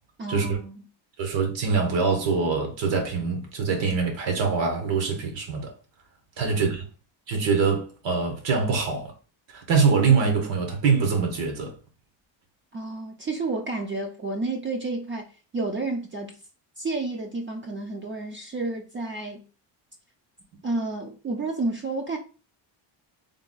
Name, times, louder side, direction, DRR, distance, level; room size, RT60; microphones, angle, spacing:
voice 1, 0.2-0.8 6.4-6.6 12.7-15.3 15.5-16.3 16.8-19.4 20.6-22.2, right 3 dB, 25° right, 0.5 m, -30 dB
voice 2, 1.2-5.7 6.4-6.8 7.3-9.1 9.5-11.8, right 5 dB, 70° right, 1.4 m, -24 dB
3.5 x 2.3 x 3.9 m
cardioid pair, 140°, 46 cm